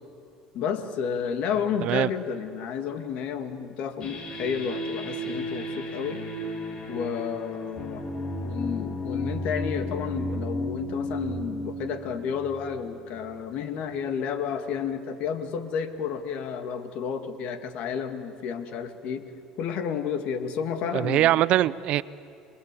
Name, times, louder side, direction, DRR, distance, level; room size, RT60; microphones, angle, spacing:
voice 1, 0.5-6.2 6.9-8.0 8.4-19.3 19.6-21.4, left 7 dB, 60° left, 8 dB, 2.2 m, -31 dB
sound 1, 4.0-13.4, left 1 dB, 45° left, 3.8 m, -34 dB
voice 2, 20.9-22.0, right 14 dB, 60° right, 18 dB, 0.6 m, -22 dB
28.0 x 21.0 x 8.5 m, 2.4 s
supercardioid pair, 110°, 2 cm